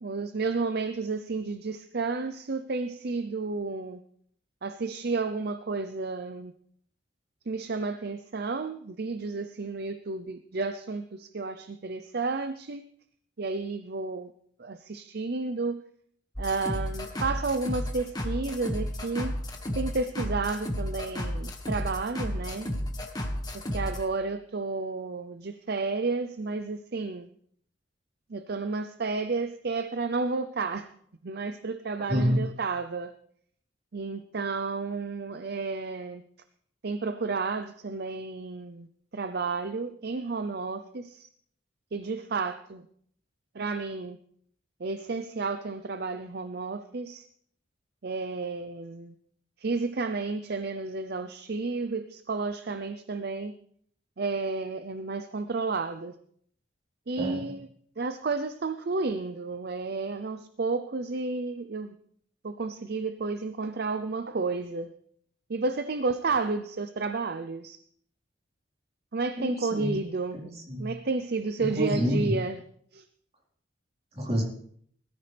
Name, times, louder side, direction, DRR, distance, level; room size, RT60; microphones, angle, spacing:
voice 1, 0.0-4.0 4.6-6.5 7.5-12.8 13.4-14.3 14.6-15.8 16.4-19.4 19.8-22.7 23.5-27.3 28.3-30.9 31.2-33.1 33.9-36.2 36.8-38.9 39.1-41.3 41.9-42.8 43.5-44.2 44.8-47.3 48.0-49.1 49.6-53.5 54.2-56.1 57.1-57.7 58.0-61.9 62.4-64.9 65.5-67.8 69.1-70.4 70.8-72.6 72.9-73.0, right 3 dB, 55° right, 0.6 m, -31 dB
sound 1, 16.4-24.0, equal, 20° left, 1.8 m, -33 dB
voice 2, 32.1-32.4 57.2-57.5 69.4-69.9 70.3-70.9 71.6-72.3 74.1-74.4, equal, 35° right, 4.2 m, -28 dB
20.5 x 14.0 x 3.4 m
head